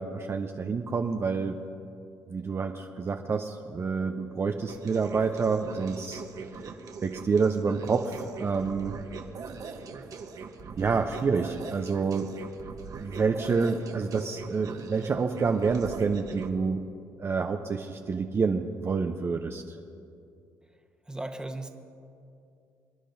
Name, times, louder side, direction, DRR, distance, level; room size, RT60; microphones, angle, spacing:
voice 1, 0.0-1.6 2.3-6.2 6.6-6.7 7.0-9.0 10.8-12.3 13.0-16.8 17.2-19.6, right 5 dB, 35° right, 4 dB, 0.7 m, -28 dB
sound 1, 4.7-16.5, right 5 dB, 55° right, 1.1 m, -42 dB
voice 2, 21.1-21.7, right 2 dB, 10° right, 4 dB, 1.3 m, -36 dB
26.0 x 10.0 x 2.7 m, 2.5 s
supercardioid pair, 65°, 7 cm